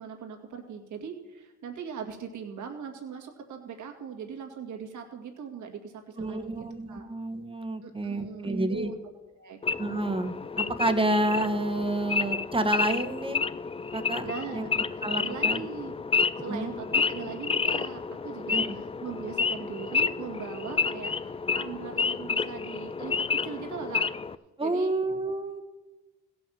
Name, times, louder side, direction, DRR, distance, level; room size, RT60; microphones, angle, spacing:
voice 1, 0.0-7.1 7.8-9.0 9.3-9.6 14.2-14.7 15.0-24.1 24.6-24.9, right 7 dB, 70° right, 2 dB, 2.1 m, -40 dB
voice 2, 6.2-8.9 9.8-13.4 13.9-14.3 14.5-14.7 15.0-15.6 16.4-16.7 18.5-18.8 24.6-25.6, right 1 dB, 15° right, 8 dB, 1.4 m, -29 dB
Wild animals / Idling, 9.6-24.4, left 5 dB, 20° left, 0.4 m, -30 dB
16.0 x 5.8 x 7.1 m, 1.1 s
supercardioid pair, 70°, 31 cm